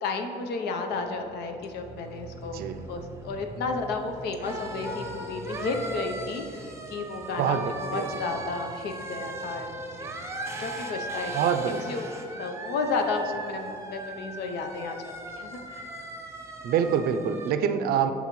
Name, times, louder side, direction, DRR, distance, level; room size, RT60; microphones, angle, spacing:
voice 1, 0.0-9.7 10.2-10.3 10.6-11.3 11.7-12.1 12.4-15.0 15.3-15.9, left 4 dB, 75° left, 5 dB, 0.7 m, -32 dB
sound 1, 1.1-17.5, right 2 dB, 15° right, 0.7 m, -39 dB
voice 2, 7.4-8.1 11.3-11.9 16.6-18.1, right 7 dB, 65° right, 8 dB, 0.5 m, -26 dB
11.0 x 4.0 x 3.1 m, 2.8 s
cardioid pair, 110°, 17 cm